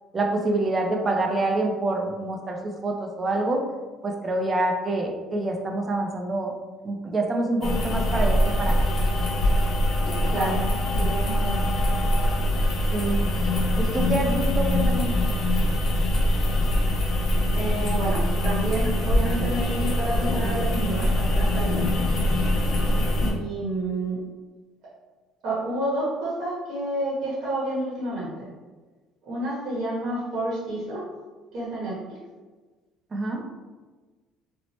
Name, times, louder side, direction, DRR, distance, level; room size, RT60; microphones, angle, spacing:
voice 1, 0.1-3.6 4.0-6.5 6.8-8.9 12.9-13.2 13.8-15.1 33.1-33.4, right 2 dB, 25° right, 2 dB, 0.4 m, -26 dB
sound 1, 7.6-23.3, left 1 dB, 45° left, 0.7 m, -23 dB
voice 2, 10.3-10.6 10.9-11.6 17.5-21.9 23.2-24.2 25.4-28.5 29.3-31.0 31.5-32.2, right 1 dB, 60° right, -8 dB, 1.0 m, -29 dB
2.8 x 2.0 x 3.0 m, 1.3 s
cardioid pair, 120°, 0 cm